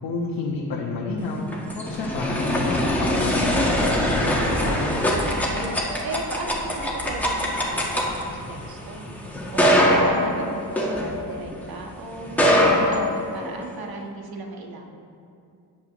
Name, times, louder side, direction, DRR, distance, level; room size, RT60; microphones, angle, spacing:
voice 1, 0.0-1.4 1.7-4.9, left 3 dB, 75° left, -4 dB, 1.3 m, -30 dB
sound 1, 1.3-11.6 12.2-13.7, equal, 5° left, 1.4 m, -23 dB
voice 2, 5.3-9.0 9.5-14.9, right 2 dB, 60° right, 1 dB, 1.5 m, -36 dB
17.5 x 7.1 x 3.0 m, 2.4 s
cardioid pair, 125°, 40 cm